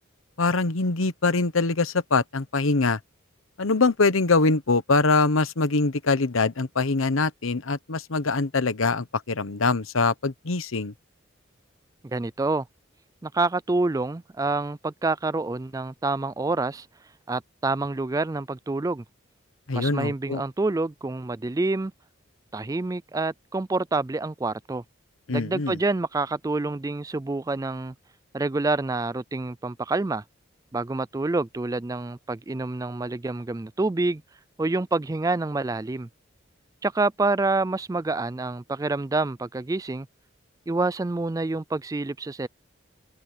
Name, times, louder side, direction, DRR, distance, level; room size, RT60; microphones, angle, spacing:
voice 1, 0.4-3.0 3.6-10.9 19.7-20.4 25.3-25.8, left 3 dB, 85° left, 1.0 m, -23 dB
voice 2, 12.1-12.7 13.2-16.9 17.3-19.0 19.7-21.9 22.5-24.8 25.3-27.9 28.3-30.2 30.7-34.2 34.6-36.1 36.8-40.1 40.7-42.5, right 3 dB, 15° right, 0.3 m, -27 dB
head